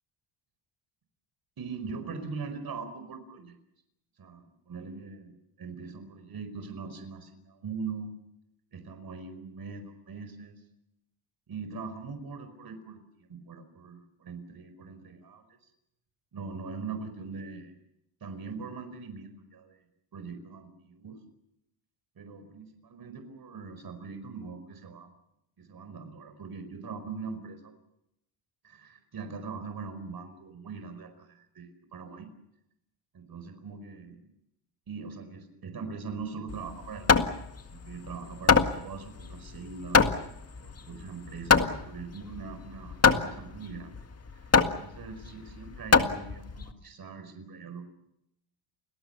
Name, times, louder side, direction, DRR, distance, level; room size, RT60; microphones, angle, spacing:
voice 1, 1.6-3.5 4.2-5.3 5.6-8.1 8.7-10.6 11.5-15.6 16.3-17.7 18.2-19.8 20.1-21.2 22.2-25.1 25.6-27.7 28.6-32.3 33.1-34.3 34.9-37.3 37.7-40.1 40.6-43.9 44.3-47.8, right 5 dB, 45° right, 8 dB, 5.0 m, -41 dB
Hammer, 36.5-46.7, left 5 dB, 30° left, 1.9 m, -25 dB
30.0 x 21.0 x 7.0 m, 0.82 s
cardioid pair, 100°, 49 cm